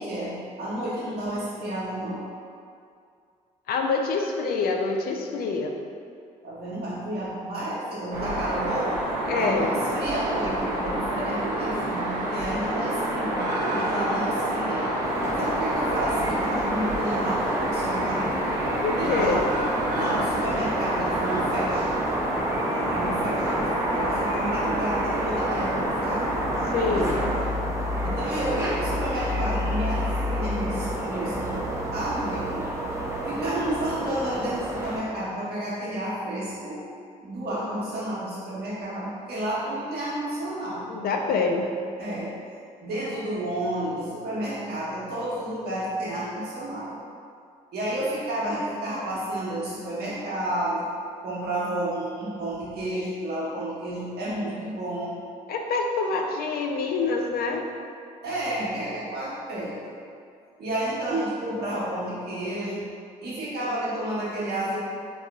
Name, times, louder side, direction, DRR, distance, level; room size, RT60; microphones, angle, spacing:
voice 1, 0.0-2.2 6.4-8.9 9.2-14.9 15.4-18.3 19.0-19.5 19.9-22.0 22.7-26.3 26.9-27.3 28.0-32.7 33.3-36.8 37.2-40.9 42.0-42.4 42.8-46.9 47.7-50.9 51.2-55.2 58.2-60.0 60.6-62.8 63.2-64.8, right 1 dB, 55° right, -7 dB, 1.1 m, -31 dB
voice 2, 3.7-5.7 9.3-9.8 18.8-19.4 26.7-27.1 40.9-41.7 55.5-57.7, left 4 dB, 50° left, 2 dB, 0.4 m, -26 dB
sound 1, 8.1-27.4, right 1 dB, 85° right, 0.7 m, -28 dB
sound 2, 15.0-35.0, equal, 15° right, 0.6 m, -30 dB
3.6 x 2.9 x 2.3 m, 2.3 s
hypercardioid pair, 45°, 20 cm